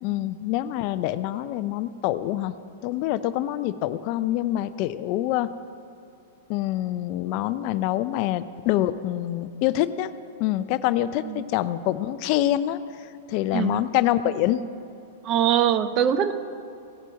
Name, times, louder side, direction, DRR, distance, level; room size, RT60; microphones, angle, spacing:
voice 1, 0.0-2.6 2.8-5.5 6.5-10.1 10.4-14.6, left 13 dB, 50° left, 14 dB, 0.4 m, -26 dB
voice 2, 13.5-13.8 15.2-16.3, right 9 dB, 40° right, 11 dB, 0.6 m, -22 dB
17.0 x 6.7 x 4.6 m, 2.5 s
hypercardioid pair, 110°, 0 cm